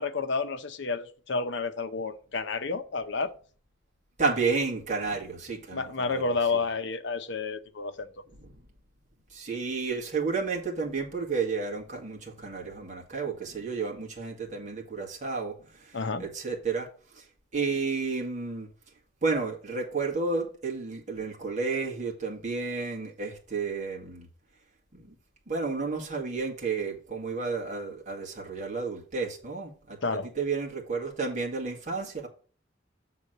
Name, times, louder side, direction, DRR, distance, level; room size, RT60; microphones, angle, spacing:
voice 1, 0.0-3.3 5.7-8.1 15.9-16.2 30.0-30.3, left 4 dB, 65° left, 0.8 m, -30 dB
voice 2, 4.2-6.4 9.3-16.9 17.2-17.3 17.5-18.7 19.2-24.3 24.9-25.1 25.5-32.3, right 4 dB, 40° right, 2.1 m, -31 dB
7.6 x 3.9 x 6.6 m
head